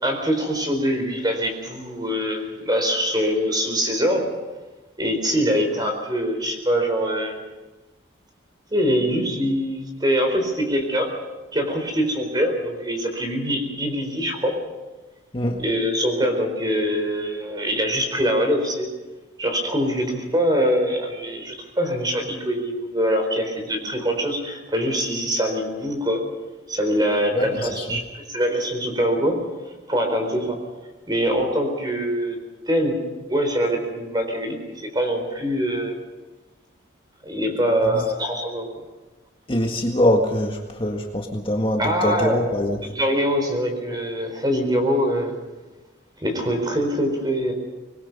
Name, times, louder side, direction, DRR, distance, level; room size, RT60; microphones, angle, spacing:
voice 1, 0.0-4.3 5.0-7.4 8.7-11.1 11.5-14.6 15.6-18.9 19.4-26.2 26.7-29.4 29.9-30.6 31.1-32.4 32.7-33.0 33.3-36.0 37.2-38.7 41.8-42.4 42.8-45.3 46.2-47.5, equal, 20° right, 4 dB, 4.4 m, -23 dB
voice 2, 27.3-28.0 37.9-38.0 39.5-42.8, left 1 dB, 25° left, 1 dB, 1.7 m, -23 dB
25.5 x 21.0 x 5.5 m, 1.2 s
head